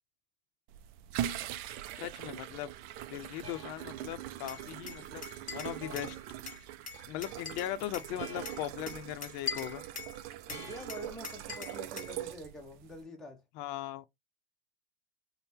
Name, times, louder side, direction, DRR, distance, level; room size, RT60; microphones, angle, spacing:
sound 1, 0.7-13.0, right 12 dB, 50° right, 0.5 m, -42 dB
voice 1, 2.0-2.7 3.1-5.2 5.5-6.2 7.1-9.8 13.5-14.1, left 13 dB, 45° left, 0.5 m, -39 dB
sound 2, 3.4-3.9 5.8-6.3 8.2-8.8 10.5-11.1, equal, 20° right, 1.6 m, -49 dB
Glass, 4.5-6.1 6.5-8.1 8.5-10.2 10.5-12.2, left 5 dB, 25° left, 1.3 m, -42 dB
voice 2, 10.5-13.4, equal, ahead, 0.7 m, -46 dB
2.7 x 2.1 x 3.5 m
hypercardioid pair, 105°, 32 cm